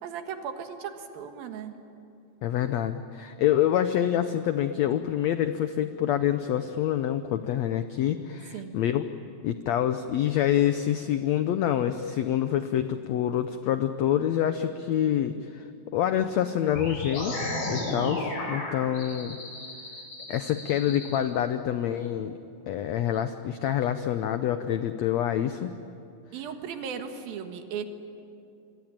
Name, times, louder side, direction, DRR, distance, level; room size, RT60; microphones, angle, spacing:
voice 1, 0.0-1.7 8.5-8.8 26.3-27.8, right 7 dB, 85° right, 6 dB, 3.4 m, -36 dB
voice 2, 2.4-9.0 9.4-15.7 15.9-17.4 17.7-19.4 20.3-22.4 22.7-25.7, left 10 dB, 85° left, 9 dB, 1.5 m, -26 dB
sound 1, 16.8-21.2, left 1 dB, 50° left, 6.3 m, -34 dB
27.5 x 23.5 x 9.0 m, 2.6 s
omnidirectional pair, 4.1 m